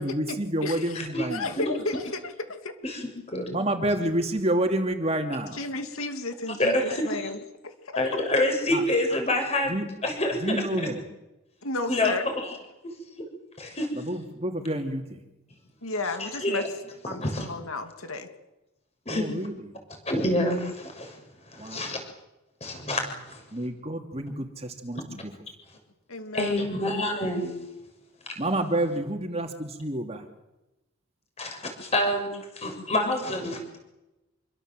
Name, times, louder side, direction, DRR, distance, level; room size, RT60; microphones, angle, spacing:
voice 1, 0.0-1.6 3.5-5.6 8.7-8.8 9.7-9.9 10.4-11.0 13.9-15.2 19.1-19.8 21.6-22.0 23.5-25.3 28.4-30.3, right 1 dB, 30° right, 4 dB, 2.8 m, -29 dB
voice 2, 0.6-2.7 5.5-8.0 11.6-12.2 15.8-16.6 17.1-18.3 26.1-26.7, left 2 dB, 85° left, 7 dB, 2.8 m, -33 dB
voice 3, 2.8-3.5 6.6-7.3 7.9-9.8 10.0-10.4 10.8-10.9 11.9-12.3 13.2-13.3 13.6-13.9 16.2-16.6 17.2-17.5 19.0-19.2 20.1-21.2 21.5-22.0 22.6-23.4 26.3-27.6 31.4-32.3 32.6-33.8, left 1 dB, 30° left, 4 dB, 6.6 m, -27 dB
27.5 x 24.0 x 7.9 m, 0.97 s
head